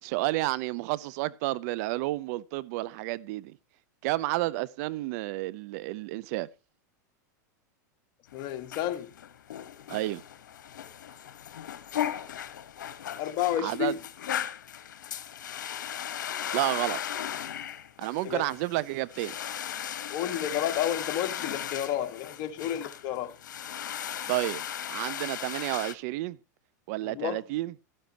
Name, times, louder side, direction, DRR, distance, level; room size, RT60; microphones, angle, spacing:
voice 1, 0.0-3.6 4.0-6.5 9.9-10.2 13.6-13.9 16.5-17.0 18.0-19.3 24.3-24.6 24.9-26.4 26.9-27.7, right 18 dB, 60° right, 0.6 m, -30 dB
sound 1, 8.3-25.9, left 10 dB, 90° left, 1.1 m, -37 dB
voice 2, 8.3-9.1 13.2-14.0 18.2-18.4 20.1-23.3 27.0-27.4, left 11 dB, 50° left, 1.6 m, -31 dB
12.5 x 12.0 x 2.9 m
hypercardioid pair, 120°, 10 cm